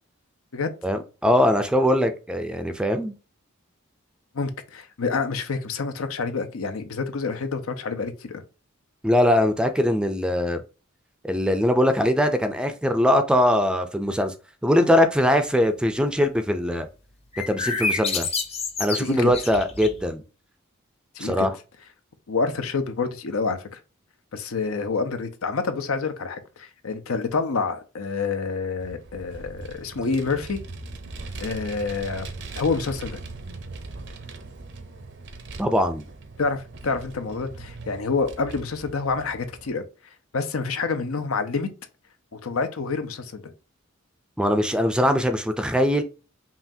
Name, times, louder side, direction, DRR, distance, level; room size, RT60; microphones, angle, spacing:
voice 1, 0.8-3.1 9.0-10.6 11.2-14.3 14.6-16.9 17.5-18.3 18.8-20.2 21.2-21.6 35.6-36.0 44.4-46.0, equal, 5° right, 0.4 m, -21 dB
voice 2, 4.3-8.4 19.0-19.3 21.2-21.5 22.3-23.8 24.3-30.6 31.4-32.3 32.6-33.2 36.4-39.8 40.3-41.7 42.3-43.4, left 4 dB, 85° left, 0.7 m, -27 dB
sound 1, 17.3-20.1, left 4 dB, 30° left, 0.7 m, -28 dB
Vehicle, 28.8-39.7, right 3 dB, 60° right, 0.6 m, -40 dB
5.6 x 2.4 x 2.7 m
head